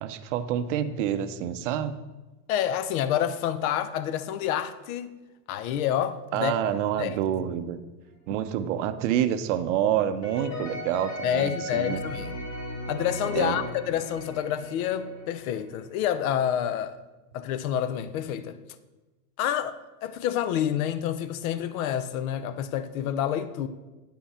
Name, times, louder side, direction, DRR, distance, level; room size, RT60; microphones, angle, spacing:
voice 1, 0.0-1.9 6.3-7.8 8.3-12.0 13.4-13.6, right 10 dB, 50° right, 0.6 m, -27 dB
voice 2, 2.5-5.1 5.5-6.5 7.0-7.2 11.2-12.3 12.9-17.0 17.3-18.6 19.4-23.7, left 10 dB, 60° left, 0.6 m, -28 dB
sound 1, 10.2-16.1, left 1 dB, 35° left, 2.1 m, -37 dB
10.0 x 5.6 x 4.2 m
supercardioid pair, 160°, 47 cm